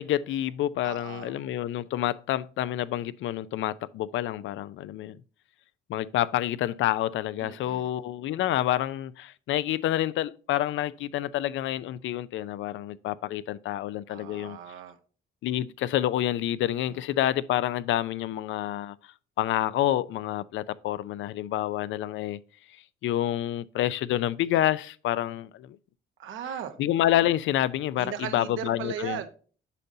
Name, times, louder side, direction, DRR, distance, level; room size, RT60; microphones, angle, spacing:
voice 1, 0.0-5.2 5.9-14.6 15.4-19.0 19.4-22.4 23.0-25.8 26.8-29.2, left 13 dB, 75° left, 0.4 m, -28 dB
voice 2, 0.8-1.3 7.4-7.9 14.1-15.0 16.9-17.0 26.2-26.8 28.0-29.3, right 9 dB, 80° right, 1.1 m, -37 dB
8.3 x 5.4 x 2.6 m
cardioid pair, 90°, 20 cm